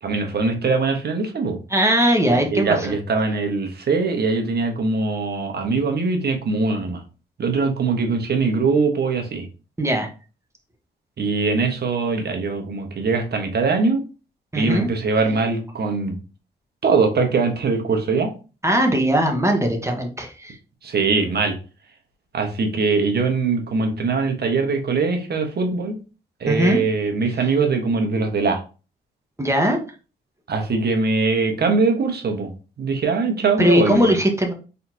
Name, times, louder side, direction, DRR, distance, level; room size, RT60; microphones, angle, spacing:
voice 1, 0.0-1.6 2.3-7.0 7.4-9.5 11.2-14.0 14.5-16.2 16.8-18.3 20.8-21.5 22.3-26.0 26.4-28.6 30.5-32.5 32.8-34.1, right 4 dB, 55° right, 4 dB, 1.3 m, -22 dB
voice 2, 1.7-2.9 9.8-10.1 14.5-14.9 18.6-20.6 26.4-26.8 29.4-29.8 33.6-34.5, equal, 15° right, 3 dB, 1.3 m, -19 dB
4.2 x 4.0 x 2.8 m, 0.34 s
cardioid pair, 60°, 19 cm